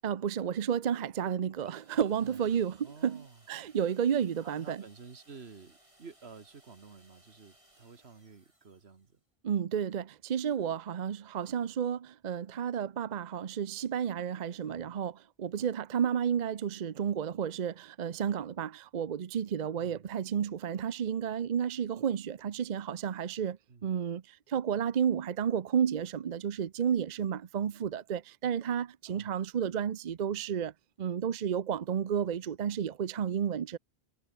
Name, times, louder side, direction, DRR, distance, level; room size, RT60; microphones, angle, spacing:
voice 1, 0.0-4.8 9.4-30.7 31.0-33.8, right 8 dB, 50° right, 0.7 m, -32 dB
sound 1, 1.6-9.2, right 1 dB, 30° right, 4.1 m, -64 dB
voice 2, 2.2-3.4 4.4-9.2 14.6-14.9 19.7-20.1 23.7-23.9 29.1-29.3, right 5 dB, 90° right, 1.9 m, -51 dB
omnidirectional pair, 1.1 m